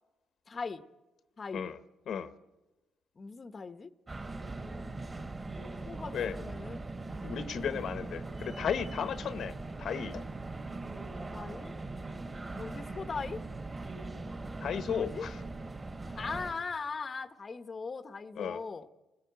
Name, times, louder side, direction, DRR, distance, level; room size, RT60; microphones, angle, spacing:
voice 1, 0.5-0.8 1.4-1.6 3.2-3.9 5.9-6.8 11.3-11.7 12.5-13.4 14.9-15.3 16.2-18.9, left 4 dB, 35° left, 1.1 m, -39 dB
sound 1, 4.1-16.5, right 2 dB, 30° right, 4.0 m, -40 dB
voice 2, 7.2-10.2 14.6-15.3 18.4-18.6, left 8 dB, 65° left, 1.1 m, -35 dB
29.5 x 19.0 x 8.3 m
cardioid pair, 90°, 0 cm